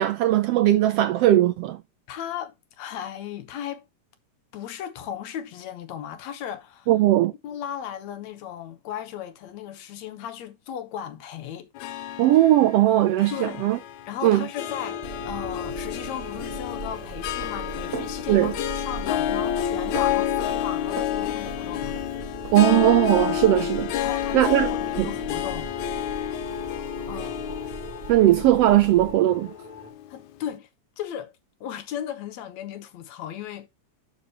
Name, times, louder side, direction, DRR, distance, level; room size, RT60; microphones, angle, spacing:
voice 1, 0.0-1.8 6.9-7.3 12.2-13.8 14.2-14.5 18.3-18.5 22.5-23.9 24.3-24.7 25.0-25.1 28.1-29.5, right 14 dB, 80° right, 1.4 m, -19 dB
voice 2, 2.1-3.8 4.5-6.9 7.4-11.7 13.3-13.7 14.1-22.0 24.0-25.7 27.1-27.4 30.1-30.7 31.0-31.3 31.6-33.7, left 10 dB, 75° left, 2.3 m, -36 dB
Harp, 11.8-30.2, left 10 dB, 90° left, 2.2 m, -30 dB
sound 1, 14.6-29.9, left 3 dB, 15° left, 2.5 m, -44 dB
sound 2, 15.0-29.1, right 5 dB, 50° right, 0.9 m, -39 dB
11.5 x 5.4 x 2.9 m
omnidirectional pair, 3.3 m